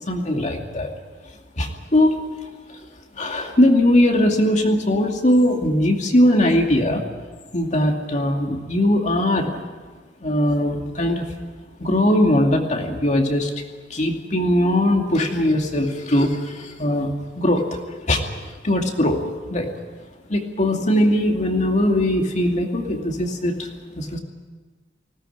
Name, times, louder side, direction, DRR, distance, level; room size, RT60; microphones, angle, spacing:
voice 1, 0.1-0.9 1.6-2.2 3.2-7.0 7.5-9.6 10.2-11.3 11.8-13.5 13.9-17.8 18.1-18.2 18.6-19.2 19.5-19.7 20.3-23.7 24.0-24.2, left 1 dB, 40° left, 2 dB, 2.5 m, -20 dB
20.0 x 17.5 x 9.3 m, 1.4 s
head